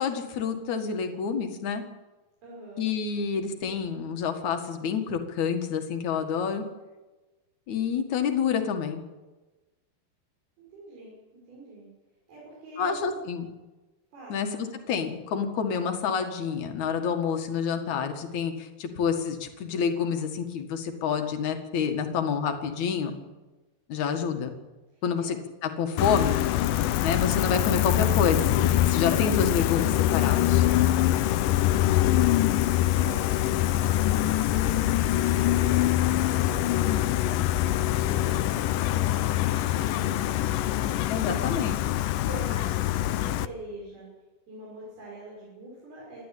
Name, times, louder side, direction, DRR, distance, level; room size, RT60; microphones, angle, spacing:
voice 1, 0.0-1.8 2.8-6.6 7.7-9.0 12.8-13.5 14.3-23.2 23.9-24.5 25.0-25.4 25.6-26.6 27.0-30.7 41.1-41.8, left 6 dB, 55° left, 5 dB, 3.0 m, -28 dB
voice 2, 2.4-2.9 10.6-11.2 11.5-11.9 12.3-13.1 14.1-14.8 24.9-25.3 26.6-27.1 31.1-31.6 32.7-36.0 36.3-41.6 42.3-44.1 44.5-46.2, right 2 dB, 90° right, -5 dB, 8.2 m, -44 dB
Gull seagull, 26.0-43.5, left 14 dB, 75° left, 2.2 m, -24 dB
28.0 x 11.5 x 8.5 m, 1.2 s
omnidirectional pair, 4.3 m